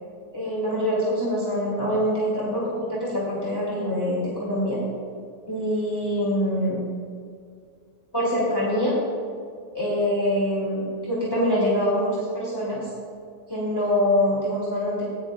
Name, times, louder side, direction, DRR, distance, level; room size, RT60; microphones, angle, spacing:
voice 1, 0.3-4.8 5.5-6.8 8.1-9.0 9.7-12.9 13.5-15.1, equal, 15° left, -8 dB, 3.2 m, -24 dB
19.5 x 11.0 x 2.5 m, 2.2 s
omnidirectional pair, 1.7 m